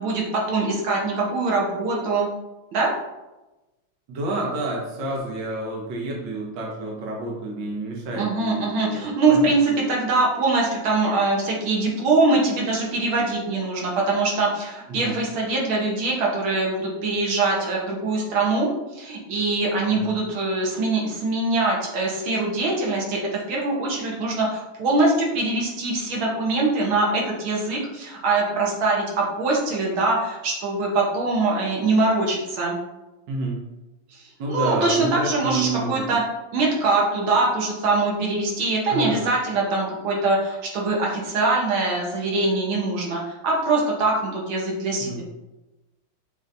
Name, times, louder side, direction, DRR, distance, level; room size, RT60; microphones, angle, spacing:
voice 1, 0.0-2.3 2.7-2.9 8.1-23.2 23.5-32.8 34.5-36.2 36.5-45.2, right 3 dB, 90° right, -3 dB, 1.8 m, -23 dB
voice 2, 4.1-9.5 14.9-15.2 19.9-20.1 33.3-33.6 34.4-36.2 38.9-39.2 45.0-45.2, right 2 dB, 65° right, -1 dB, 1.5 m, -29 dB
6.7 x 2.8 x 2.6 m, 1.0 s
omnidirectional pair, 2.2 m